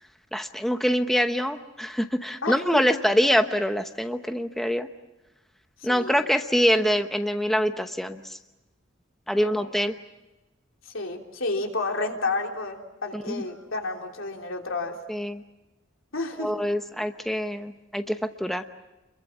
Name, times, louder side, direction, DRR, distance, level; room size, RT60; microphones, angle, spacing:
voice 1, 0.3-4.9 5.8-8.2 9.3-9.9 13.1-13.4 15.1-15.4 16.4-18.6, equal, ahead, 7 dB, 0.9 m, -25 dB
voice 2, 2.4-3.0 5.9-6.2 9.3-9.7 10.9-15.0 16.1-16.5, left 3 dB, 90° left, 2 dB, 3.4 m, -31 dB
28.5 x 22.5 x 7.4 m, 1.0 s
head